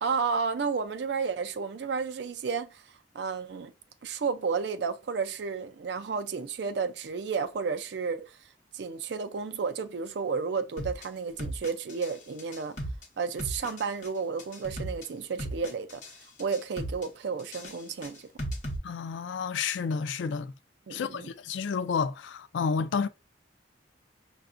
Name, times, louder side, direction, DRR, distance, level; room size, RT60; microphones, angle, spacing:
voice 1, 0.0-2.8 3.1-3.7 4.0-8.4 8.7-12.8 13.2-16.0 16.4-18.3 20.9-21.3, right 5 dB, 65° right, 0.4 m, -32 dB
sound 1, 10.8-11.0 11.4-12.1 12.4-13.0 13.4-14.1 14.4-15.0 15.4-16.1 16.4-17.1 17.4-18.8, right 1 dB, 40° left, 1.0 m, -36 dB
voice 2, 18.8-20.5 20.9-23.1, left 5 dB, 80° left, 0.4 m, -30 dB
5.6 x 2.3 x 2.5 m
head